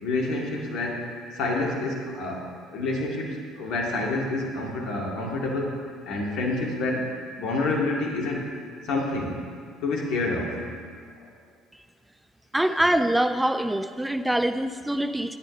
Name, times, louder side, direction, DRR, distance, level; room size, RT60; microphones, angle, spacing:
voice 1, 0.0-1.1 1.3-5.8 6.0-7.1 7.4-8.5 8.8-9.4 9.8-10.6 11.2-11.3, left 2 dB, 60° left, -1 dB, 2.2 m, -28 dB
voice 2, 12.5-15.4, right 1 dB, 5° right, 10 dB, 0.6 m, -24 dB
20.5 x 9.3 x 3.2 m, 2.1 s
figure-of-eight pair, 55°, 0 cm